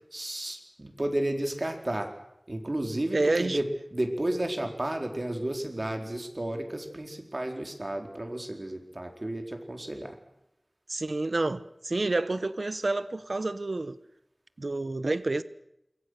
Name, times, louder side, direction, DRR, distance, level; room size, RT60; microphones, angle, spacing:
voice 1, 0.1-2.1 2.5-10.1, right 1 dB, 45° right, 4.3 m, -32 dB
voice 2, 3.1-3.6 10.9-14.0 14.6-15.4, right 2 dB, 80° right, 1.0 m, -29 dB
27.5 x 22.5 x 6.6 m
wide cardioid pair, 45°, 0 cm